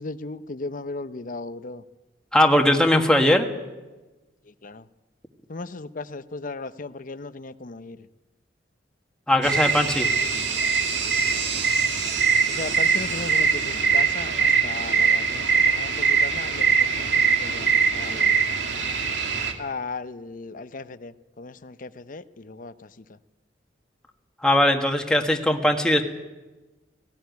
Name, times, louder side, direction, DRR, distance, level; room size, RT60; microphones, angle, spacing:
voice 1, 0.0-1.8 4.6-4.8 5.5-8.0 9.5-9.9 11.3-11.4 12.5-18.5 19.6-22.9, left 3 dB, 50° left, 13 dB, 0.7 m, -37 dB
voice 2, 2.3-3.5 9.3-10.1 24.4-26.0, left 1 dB, 5° left, 3 dB, 1.6 m, -19 dB
sound 1, 9.4-19.5, right 5 dB, 75° right, 2.2 m, -22 dB
17.5 x 16.5 x 9.4 m, 1.2 s
head